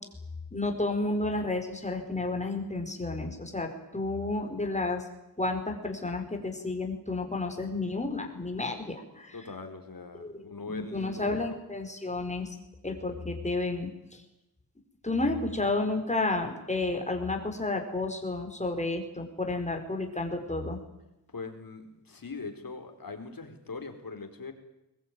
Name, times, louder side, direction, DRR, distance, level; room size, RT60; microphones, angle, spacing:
voice 1, 0.5-5.0 5.4-9.3 10.2-10.4 10.7-12.5 12.8-13.9 15.0-20.8, left 2 dB, 20° left, 4 dB, 4.9 m, -31 dB
voice 2, 9.3-11.6 21.3-24.5, left 4 dB, 60° left, 6 dB, 4.2 m, -41 dB
22.0 x 21.0 x 9.3 m, 0.93 s
wide cardioid pair, 95°, 39 cm